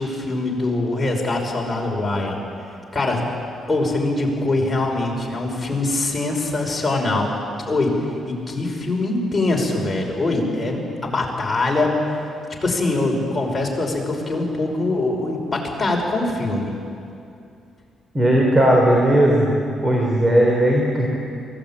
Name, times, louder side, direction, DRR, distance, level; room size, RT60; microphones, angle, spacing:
voice 1, 0.0-2.4 2.9-3.3 3.7-7.3 7.7-12.2 12.6-16.7, left 2 dB, 20° left, -1 dB, 5.5 m, -23 dB
voice 2, 18.1-19.5 19.8-21.1, right 1 dB, 25° right, -1 dB, 3.7 m, -16 dB
22.5 x 16.5 x 8.9 m, 2.5 s
cardioid pair, 90°, 0 cm